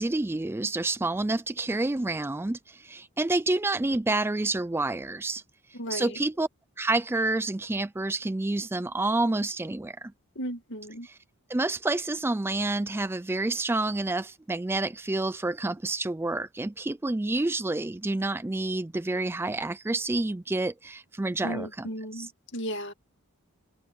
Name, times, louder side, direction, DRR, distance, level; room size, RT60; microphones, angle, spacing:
voice 1, 0.0-5.4 5.9-6.5 6.8-10.1 11.0-11.1 11.5-22.3, right 2 dB, 10° right, 0.3 m, -28 dB
voice 2, 5.7-6.2 10.4-11.1 21.4-22.9, equal, 55° left, 2.1 m, -35 dB
head